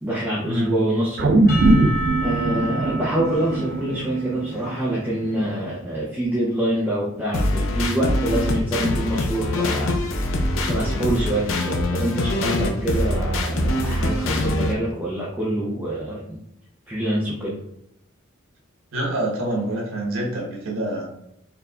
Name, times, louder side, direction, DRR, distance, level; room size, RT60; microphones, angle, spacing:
voice 1, 0.0-1.4 2.2-9.9 10.7-16.4 16.9-17.6, right 1 dB, 10° right, -6 dB, 0.6 m, -25 dB
sound 1, 1.2-5.7 6.1-6.2, right 2 dB, 55° right, 0.4 m, -21 dB
Percussion / Church bell, 1.5-5.6, right 1 dB, 45° left, 1.0 m, -33 dB
sound 2, 7.3-14.7, left 1 dB, 75° left, 0.6 m, -23 dB
voice 2, 18.9-21.1, right 1 dB, 90° right, -2 dB, 1.4 m, -26 dB
4.5 x 3.2 x 2.5 m, 0.78 s
head